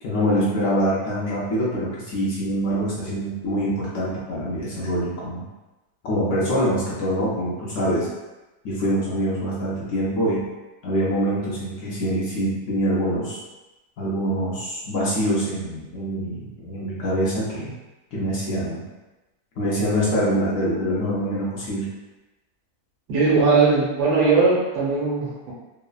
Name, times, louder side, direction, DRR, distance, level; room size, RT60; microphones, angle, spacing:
voice 1, 0.0-5.4 6.0-8.1 8.6-10.4 10.8-13.4 14.0-17.7 18.1-18.8 19.6-21.9, equal, 65° left, -7 dB, 0.8 m, -24 dB
voice 2, 23.1-25.5, right 4 dB, 75° right, -4 dB, 1.3 m, -19 dB
3.0 x 2.1 x 2.3 m, 1.1 s
omnidirectional pair, 1.8 m